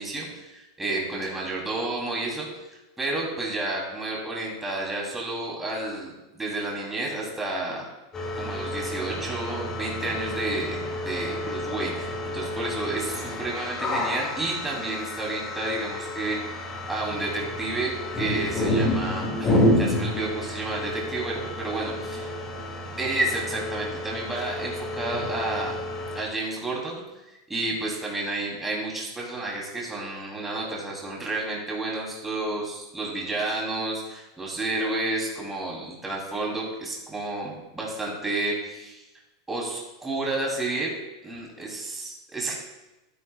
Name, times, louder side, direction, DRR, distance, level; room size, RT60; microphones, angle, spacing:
voice 1, 0.0-2.5 3.0-7.8 8.3-16.4 16.9-21.9 23.0-25.8 26.1-27.0 27.3-39.0 39.5-40.9 41.2-42.5, right 2 dB, 10° right, -3 dB, 3.1 m, -31 dB
sound 1, 8.1-26.2, left 1 dB, 20° left, 2.1 m, -29 dB
12.5 x 10.0 x 2.3 m, 1.0 s
supercardioid pair, 135°, 2 cm